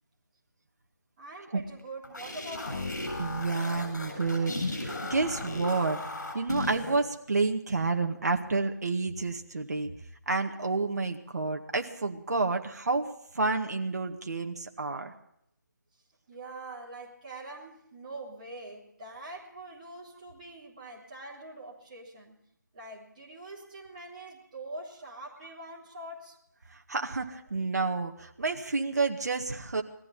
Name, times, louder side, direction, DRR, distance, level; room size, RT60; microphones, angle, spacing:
voice 1, 1.2-3.0 16.3-22.4 22.7-26.4, right 2 dB, 25° right, -5 dB, 3.4 m, -44 dB
sound 1, 1.8-7.0, left 2 dB, 60° left, 7.8 m, -36 dB
voice 2, 3.2-6.0 6.3-9.9 10.3-15.1 26.7-29.8, right 3 dB, 55° right, 4 dB, 1.9 m, -30 dB
20.5 x 15.0 x 4.1 m, 0.75 s
figure-of-eight pair, 170°, 11 cm